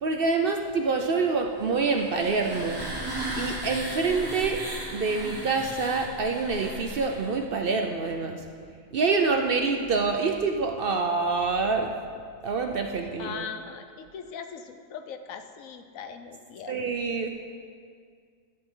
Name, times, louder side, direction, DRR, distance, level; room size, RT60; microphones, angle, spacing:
voice 1, 0.0-2.8 3.4-4.7 4.9-8.4 8.9-11.9 12.4-13.5 16.7-17.3, right 4 dB, 55° right, 4 dB, 0.7 m, -26 dB
sound 1, 1.6-7.4, right 1 dB, 15° right, 1.6 m, -36 dB
voice 2, 13.2-16.8, left 6 dB, 80° left, 8 dB, 1.1 m, -40 dB
12.0 x 8.3 x 3.8 m, 2.1 s
omnidirectional pair, 1.4 m